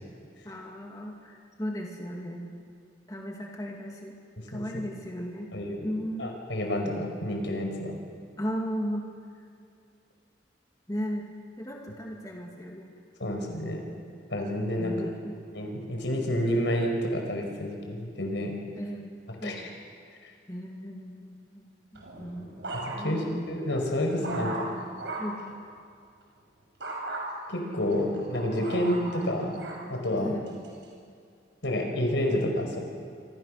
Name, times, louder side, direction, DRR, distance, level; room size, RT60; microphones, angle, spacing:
voice 1, 0.4-2.5 3.1-4.2 4.5-5.6 5.8-6.3 8.4-9.1 10.9-11.3 11.6-12.9 14.8-15.3 18.8-19.7 20.5-23.4 25.2-25.6 30.1-30.5, equal, 20° left, 0 dB, 2.4 m, -36 dB
voice 2, 5.5-5.9 6.2-8.0 13.2-13.8 14.3-15.0 15.5-18.5 19.4-19.7 22.7-24.7 27.5-29.6 29.9-30.4 31.6-32.8, left 1 dB, 85° left, 2 dB, 5.4 m, -29 dB
sound 1, 21.9-23.3 23.8-25.4 26.8-27.2 27.9-29.8 30.5-30.8, right 2 dB, 80° right, 5.9 m, -37 dB
26.5 x 26.5 x 6.6 m, 2.2 s
head